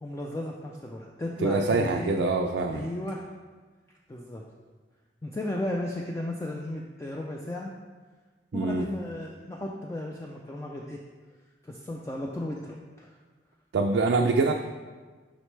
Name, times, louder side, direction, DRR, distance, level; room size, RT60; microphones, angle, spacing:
voice 1, 0.0-2.1 2.7-3.2 4.1-4.4 5.2-7.7 8.5-11.0 11.6-13.2, left 1 dB, 15° left, -1 dB, 0.3 m, -35 dB
voice 2, 1.4-2.9 8.5-8.9 13.7-14.5, right 3 dB, 75° right, 3 dB, 0.4 m, -24 dB
6.4 x 5.1 x 3.2 m, 1.4 s
head